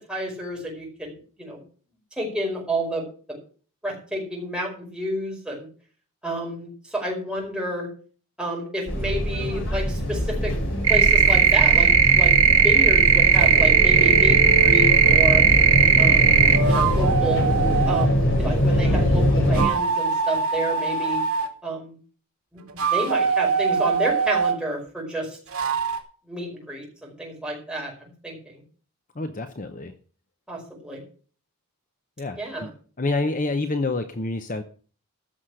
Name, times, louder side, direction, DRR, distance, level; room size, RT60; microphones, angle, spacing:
voice 1, 0.1-1.6 2.2-3.4 3.8-5.7 6.2-7.9 8.4-10.5 10.9-15.4 16.0-16.4 16.6-17.4 17.9-21.2 21.6-21.9 22.5-25.4 26.3-28.6 30.5-31.0 32.3-32.7, right 1 dB, 5° right, -2 dB, 4.9 m, -30 dB
sound 1, 8.9-19.7, equal, 55° left, 3.3 m, -23 dB
sound 2, 10.8-16.6, right 8 dB, 60° right, 1.2 m, -16 dB
sound 3, 13.3-15.2 16.3-18.1 19.4-21.5 22.6-24.6 25.5-26.0, right 5 dB, 80° right, 2.5 m, -25 dB
voice 2, 29.2-30.0 32.2-32.7 33.0-34.6, left 2 dB, 35° left, 8 dB, 0.8 m, -27 dB
14.5 x 6.4 x 6.4 m, 0.41 s
head